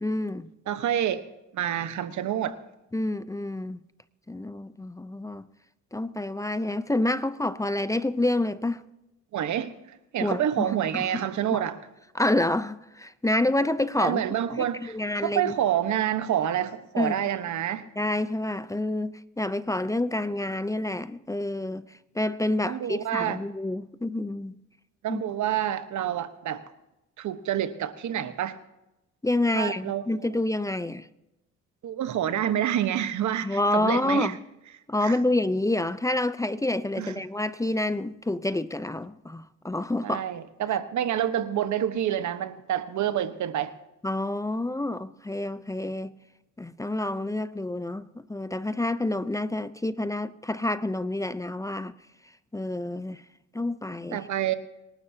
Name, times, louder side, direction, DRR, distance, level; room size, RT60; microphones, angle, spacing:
voice 1, 0.0-0.5 2.9-3.8 4.3-5.5 5.9-8.8 10.2-11.6 12.1-14.2 14.5-15.5 17.0-17.2 18.0-24.6 25.1-25.2 29.2-31.1 33.4-34.4 34.9-40.2 44.0-46.1 46.6-51.9 52.5-53.2 53.5-54.3, left 2 dB, 10° left, 0.7 m, -28 dB
voice 2, 0.7-1.2 1.5-2.6 9.3-9.7 10.1-11.8 14.0-14.9 15.2-17.8 22.6-23.4 25.0-26.6 27.2-28.6 29.5-30.0 31.8-34.3 35.0-35.1 37.0-37.1 40.0-43.7 54.1-54.5, right 10 dB, 70° right, 1.3 m, -27 dB
26.0 x 12.0 x 2.9 m
cardioid pair, 90°, 30 cm